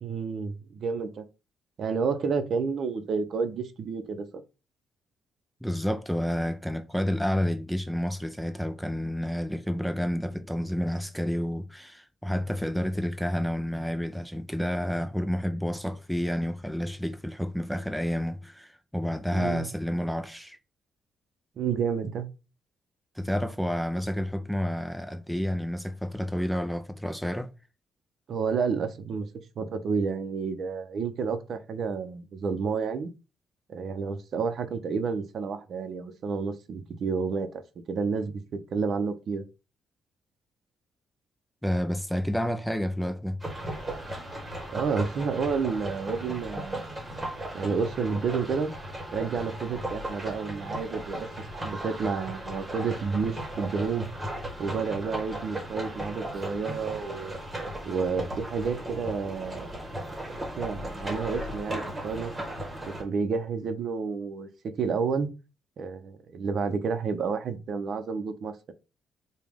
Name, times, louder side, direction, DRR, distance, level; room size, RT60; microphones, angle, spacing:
voice 1, 0.0-1.2 1.8-4.4 19.3-19.7 21.6-22.3 28.3-29.3 29.6-33.1 33.7-37.6 37.9-39.4 44.7-46.9 47.5-48.7 49.1-51.3 51.5-54.1 54.6-57.4 57.8-59.7 60.6-62.3 63.0-65.3 65.8-68.7, right 5 dB, 55° right, 0.6 m, -30 dB
voice 2, 5.6-20.6 23.2-27.5 41.6-43.4, equal, ahead, 0.3 m, -30 dB
sound 1, 43.4-63.0, right 1 dB, 15° right, 1.2 m, -36 dB
5.0 x 2.2 x 3.5 m
cardioid pair, 130°, 0 cm